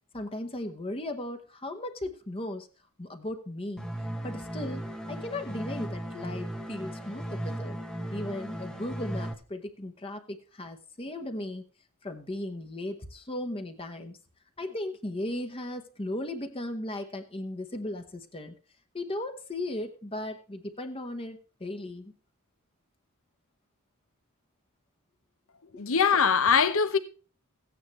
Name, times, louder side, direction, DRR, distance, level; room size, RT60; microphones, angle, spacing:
voice 1, 0.1-2.7 3.0-3.9 4.2-7.8 8.1-11.6 12.0-14.2 14.6-18.5 18.9-22.1 25.7-25.8, left 1 dB, 25° left, 1.0 m, -36 dB
sound 1, 3.8-9.3, right 1 dB, 5° left, 0.9 m, -36 dB
voice 2, 25.7-27.0, left 6 dB, 65° left, 0.9 m, -22 dB
15.0 x 9.4 x 3.1 m
head